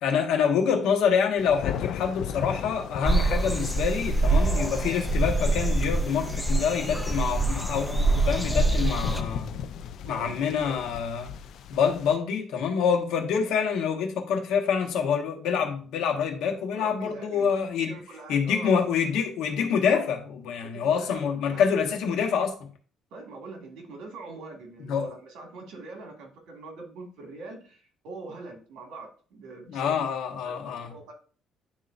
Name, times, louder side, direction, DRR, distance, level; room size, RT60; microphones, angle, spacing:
voice 1, 0.0-9.5 10.1-11.3 11.7-18.0 18.3-22.7 24.9-25.1 29.7-30.9, left 7 dB, 75° left, 1.2 m, -26 dB
Thunder, 1.4-12.2, left 9 dB, 55° left, 0.4 m, -37 dB
sound 1, 3.1-9.2, right 2 dB, ahead, 0.5 m, -25 dB
voice 2, 10.0-10.8 16.7-17.5 17.9-18.8 20.6-21.7 23.1-30.0 30.4-31.1, right 3 dB, 80° right, 2.0 m, -43 dB
10.5 x 3.7 x 2.6 m
cardioid pair, 160°, 0 cm